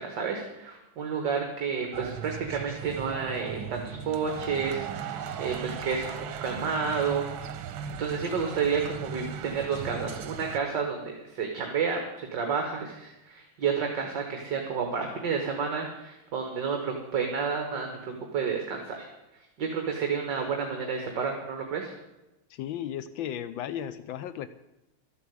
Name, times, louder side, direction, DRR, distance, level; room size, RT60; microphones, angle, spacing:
voice 1, 0.0-6.1 6.4-7.3 8.0-17.9 18.3-19.1 19.6-21.9, right 6 dB, 65° right, 3 dB, 2.1 m, -30 dB
sound 1, 1.9-10.6, right 7 dB, 90° right, 1.7 m, -37 dB
voice 2, 22.5-24.5, left 10 dB, 80° left, 13 dB, 1.4 m, -35 dB
13.0 x 8.3 x 8.1 m, 0.97 s
omnidirectional pair, 2.1 m